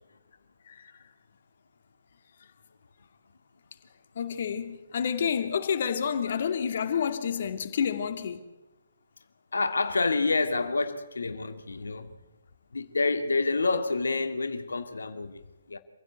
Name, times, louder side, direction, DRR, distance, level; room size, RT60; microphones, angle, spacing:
voice 1, 4.1-8.4, left 7 dB, 50° left, 2.7 m, -29 dB
voice 2, 9.5-12.2 12.7-15.8, left 3 dB, 70° left, 2.3 m, -28 dB
27.5 x 16.0 x 8.2 m
figure-of-eight pair, 135°, 0 cm